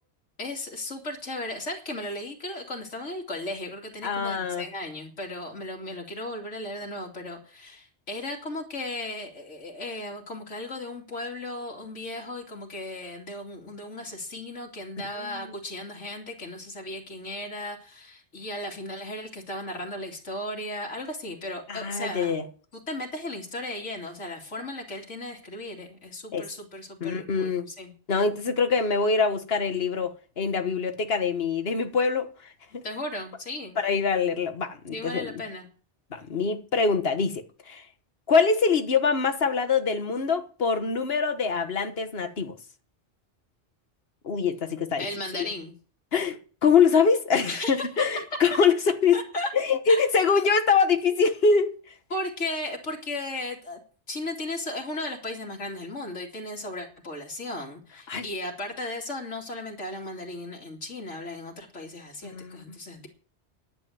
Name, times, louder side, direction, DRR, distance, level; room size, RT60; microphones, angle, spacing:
voice 1, 0.4-22.4 22.7-27.5 27.8-27.9 32.8-33.8 34.9-35.7 45.0-45.7 47.5-48.0 49.1-49.5 49.9-50.0 52.1-53.8 54.1-63.1, left 1 dB, 90° left, 2.9 m, -36 dB
voice 2, 4.0-4.7 15.2-15.5 21.7-22.4 26.3-26.5 27.0-27.7 28.1-32.3 32.7-32.8 33.8-35.3 36.1-37.8 38.3-42.6 44.2-45.1 45.3-45.5 46.1-46.4 46.6-49.2 49.5-51.8 58.1-58.2 62.2-62.8, left 5 dB, 60° left, 1.6 m, -24 dB
11.0 x 8.2 x 9.3 m
omnidirectional pair, 1.2 m